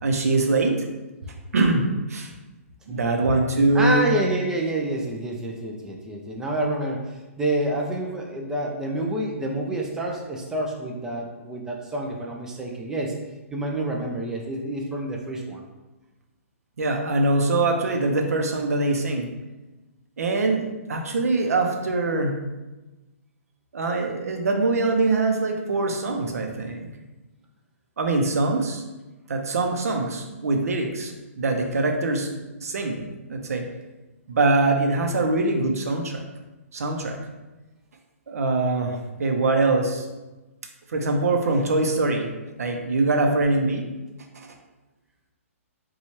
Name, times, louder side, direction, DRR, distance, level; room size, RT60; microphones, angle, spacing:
voice 1, 0.0-0.8 1.5-2.3 2.9-4.1 16.8-19.3 20.2-22.4 23.7-26.9 28.0-28.8 29.3-33.7 34.3-36.3 36.7-37.2 38.3-40.1 40.9-42.3 42.6-43.9 44.3-44.5, right 2 dB, 85° right, 3 dB, 0.6 m, -23 dB
voice 2, 2.9-3.3 3.7-13.2 13.5-15.6, right 1 dB, 5° right, -1 dB, 0.4 m, -28 dB
4.1 x 2.3 x 3.1 m, 1.1 s
hypercardioid pair, 145°, 8 cm